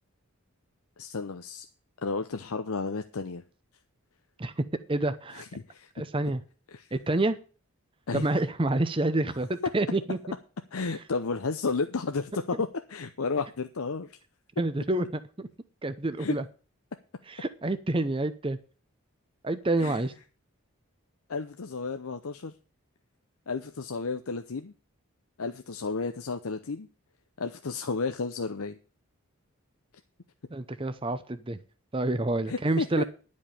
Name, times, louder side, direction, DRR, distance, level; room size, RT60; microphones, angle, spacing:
voice 1, 1.0-1.7 2.0-3.4 5.3-6.3 6.7-6.9 8.1-8.3 10.7-14.2 16.2-16.4 19.8-20.0 21.3-22.5 23.5-24.7 25.4-26.9 27.4-28.8 32.5-33.0, left 4 dB, 75° left, 7 dB, 0.7 m, -32 dB
voice 2, 4.4-5.4 6.0-6.4 6.9-7.4 8.1-10.2 14.6-15.5 15.8-16.4 17.3-18.6 19.4-20.1 30.5-31.6 31.9-33.0, right 2 dB, 25° right, 11 dB, 0.6 m, -28 dB
11.0 x 5.3 x 8.5 m, 0.37 s
head